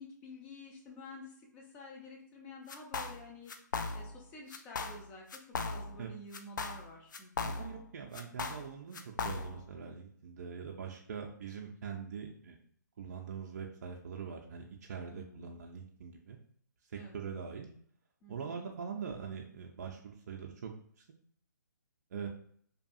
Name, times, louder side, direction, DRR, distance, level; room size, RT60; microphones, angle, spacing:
voice 1, 0.0-3.5 3.9-7.5 15.1-15.5 16.9-17.1 18.2-18.6, left 2 dB, 15° left, 0 dB, 0.4 m, -50 dB
sound 1, 2.7-3.2 3.5-4.2 4.5-5.0 5.3-6.0 6.3-7.8 8.1-9.7, left 4 dB, 75° left, 0.4 m, -38 dB
voice 2, 7.4-12.6 13.0-16.4 16.9-17.7 18.3-21.0 22.1-22.3, right 6 dB, 55° right, 0 dB, 0.4 m, -43 dB
2.7 x 2.3 x 2.5 m, 0.62 s
hypercardioid pair, 155°, 10 cm